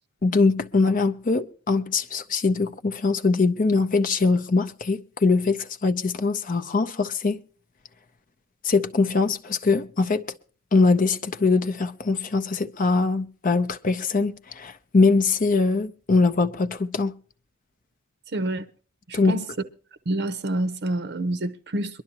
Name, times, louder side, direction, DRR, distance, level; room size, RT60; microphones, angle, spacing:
voice 1, 0.2-7.4 8.6-10.2 10.7-17.1 19.1-19.4, left 3 dB, 40° left, 0.6 m, -22 dB
voice 2, 18.3-18.6 19.1-19.5 20.1-22.0, right 1 dB, 55° right, 0.7 m, -27 dB
23.0 x 12.0 x 2.8 m
head